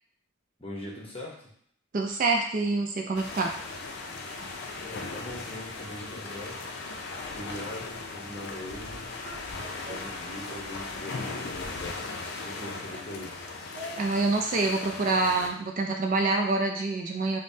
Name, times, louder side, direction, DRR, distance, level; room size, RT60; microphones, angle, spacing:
voice 1, 0.6-1.5 4.8-6.6 7.3-9.1 9.8-13.4, left 1 dB, 25° left, -3 dB, 0.8 m, -41 dB
voice 2, 1.9-3.5 9.3-10.0 13.7-17.4, right 3 dB, 40° right, 2 dB, 0.3 m, -27 dB
sound 1, 3.2-15.5, left 3 dB, 50° left, 0.4 m, -38 dB
5.0 x 2.1 x 2.7 m, 0.66 s
head